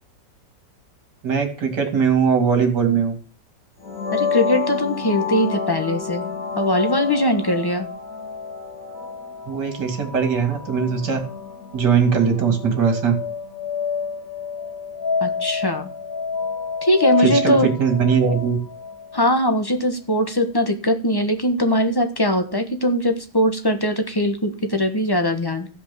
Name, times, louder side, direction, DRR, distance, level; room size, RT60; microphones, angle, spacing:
voice 1, 1.2-3.2 9.5-11.2 11.7-13.1 17.2-18.6, right 6 dB, 65° right, 4 dB, 2.9 m, -20 dB
sound 1, 3.8-19.5, left 5 dB, 50° left, 2.2 m, -29 dB
voice 2, 4.1-6.2 6.6-7.9 15.2-15.9 16.8-17.7 19.1-25.7, equal, 15° left, 7 dB, 1.0 m, -21 dB
14.5 x 5.2 x 6.8 m, 0.39 s
omnidirectional pair, 2.0 m